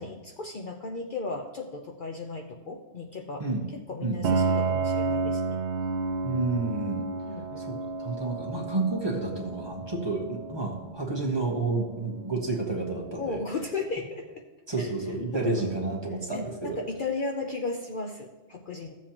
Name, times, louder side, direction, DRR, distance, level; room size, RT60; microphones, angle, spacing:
voice 1, 0.0-3.4 3.9-5.6 7.3-7.7 13.2-14.4 14.8-14.9 15.3-15.7 16.3-18.9, left 3 dB, 55° left, 3 dB, 0.8 m, -35 dB
Piano, 4.2-13.8, right 4 dB, 75° right, 0.9 m, -32 dB
voice 2, 6.2-7.1 7.6-13.4 14.7-16.8, right 3 dB, 25° right, -1 dB, 1.5 m, -30 dB
15.0 x 7.4 x 2.9 m, 1.1 s
omnidirectional pair, 1.2 m